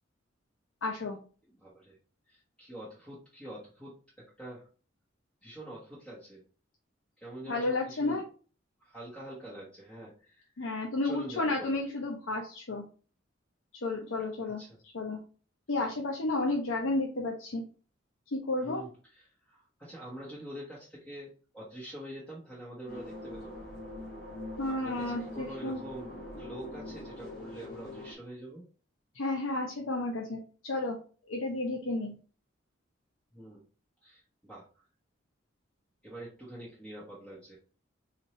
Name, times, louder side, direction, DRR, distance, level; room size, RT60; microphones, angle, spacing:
voice 1, 0.8-1.2 7.4-8.2 10.6-12.8 13.8-14.6 14.9-15.2 15.7-17.6 18.3-18.8 24.6-25.8 29.1-31.0 31.3-32.1, left 2 dB, 90° left, 0 dB, 0.7 m, -32 dB
voice 2, 1.5-2.0 2.3-4.7 5.4-6.4 7.2-8.2 8.8-10.6 11.0-11.8 14.4-14.8 15.7-15.9 18.6-23.6 24.7-28.6 33.3-33.6 34.0-34.8 36.0-37.6, right 1 dB, 5° left, -8 dB, 1.0 m, -45 dB
sound 1, 22.9-28.1, left 1 dB, 50° left, 1.3 m, -43 dB
4.1 x 2.6 x 3.0 m, 0.38 s
head